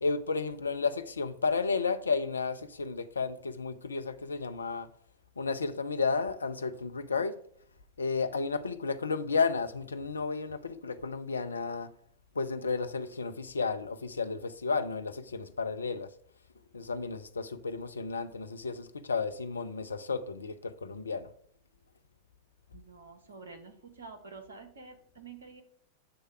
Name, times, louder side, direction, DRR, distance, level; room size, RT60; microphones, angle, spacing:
voice 1, 0.0-4.9 5.4-7.4 8.0-11.9 12.4-16.1 16.7-21.3, left 4 dB, 75° left, 0.4 m, -32 dB
voice 2, 22.7-25.6, right 4 dB, 70° right, 0.9 m, -48 dB
7.7 x 3.3 x 4.6 m
figure-of-eight pair, 90°, 0 cm